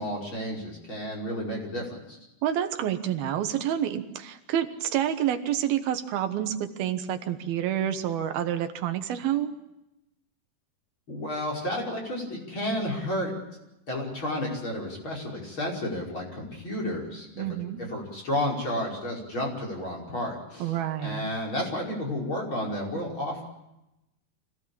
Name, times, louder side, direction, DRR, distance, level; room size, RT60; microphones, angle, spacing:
voice 1, 0.0-2.2 11.1-13.3 13.9-17.4 17.9-20.7 21.0-23.4, left 1 dB, 30° left, -1 dB, 6.0 m, -31 dB
voice 2, 2.4-9.5 17.4-17.8 20.6-21.3, right 10 dB, 80° right, 8 dB, 3.1 m, -28 dB
25.5 x 17.0 x 8.6 m, 0.91 s
omnidirectional pair, 4.3 m